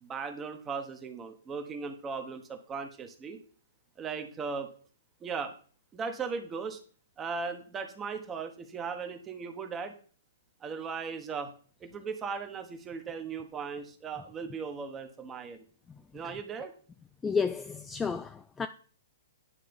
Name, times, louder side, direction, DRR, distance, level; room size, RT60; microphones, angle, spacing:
voice 1, 0.0-3.4 4.0-4.7 5.2-5.5 5.9-6.8 7.2-9.9 10.6-11.5 11.8-15.6 16.1-16.7, right 5 dB, 15° right, 1.0 m, -37 dB
voice 2, 17.2-18.7, left 5 dB, 10° left, 0.3 m, -31 dB
9.9 x 3.3 x 5.1 m
hypercardioid pair, 145°, 0 cm